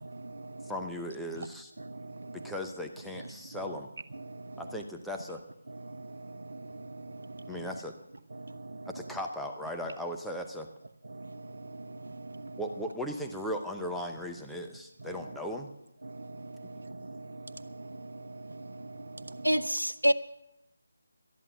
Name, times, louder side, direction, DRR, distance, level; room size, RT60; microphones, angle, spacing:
voice 1, 0.1-0.7 1.8-2.5 4.2-4.6 5.7-7.6 8.4-8.9 11.1-12.6 16.0-19.7, right 2 dB, 60° right, 0.9 m, -43 dB
voice 2, 0.6-1.7 2.3-3.9 4.6-5.4 7.5-7.9 8.9-10.7 12.6-15.7, equal, ahead, 0.7 m, -37 dB
voice 3, 19.4-20.1, equal, 85° right, 0.9 m, -25 dB
13.0 x 11.0 x 6.7 m
figure-of-eight pair, 155°, 0 cm